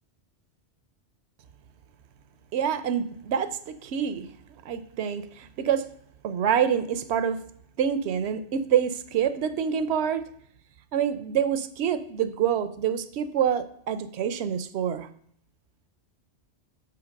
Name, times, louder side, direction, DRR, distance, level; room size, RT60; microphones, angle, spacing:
voice 1, 2.5-4.3 4.6-5.9 6.2-7.4 7.8-10.2 10.9-15.1, right 8 dB, 70° right, 13 dB, 0.9 m, -26 dB
6.9 x 5.8 x 5.1 m, 0.65 s
omnidirectional pair, 1.2 m